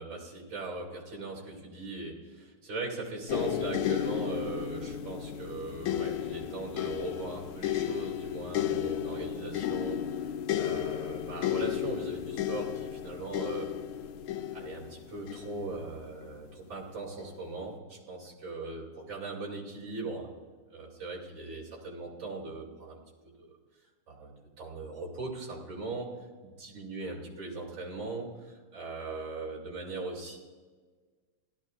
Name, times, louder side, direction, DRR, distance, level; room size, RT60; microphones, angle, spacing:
voice 1, 0.0-10.3 10.5-13.7 14.5-20.3 20.7-23.5 24.1-26.1 26.4-30.4, right 3 dB, 60° right, -4 dB, 3.5 m, -39 dB
sound 1, 3.3-16.4 17.2-17.4, left 10 dB, 85° left, 1.5 m, -33 dB
17.5 x 12.5 x 2.5 m, 1.4 s
omnidirectional pair, 2.4 m